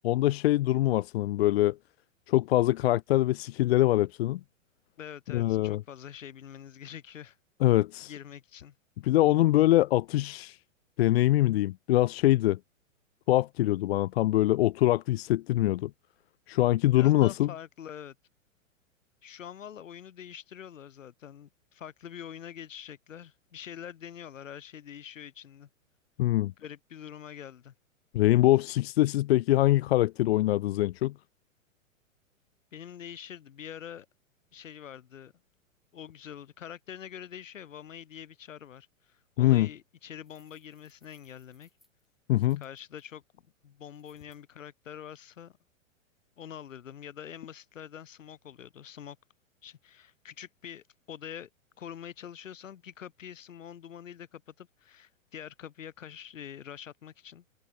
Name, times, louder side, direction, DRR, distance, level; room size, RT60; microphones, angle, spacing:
voice 1, 0.0-1.8 2.3-4.4 5.3-5.8 7.6-8.1 9.0-10.6 11.0-12.6 13.3-15.9 16.5-17.5 26.2-26.5 28.1-31.1 39.4-39.7 42.3-42.6, left 15 dB, 50° left, 0.6 m, -24 dB
voice 2, 5.0-7.4 8.0-8.8 16.9-18.2 19.2-25.7 26.6-27.7 32.7-34.1 34.5-35.3 35.9-41.7 42.6-45.5 46.4-49.2 49.6-51.5 51.8-57.4, left 9 dB, 70° left, 3.4 m, -45 dB
sound 1, 40.2-43.1 43.9-44.4, equal, ahead, 7.2 m, -69 dB
hypercardioid pair, 115°, 40 cm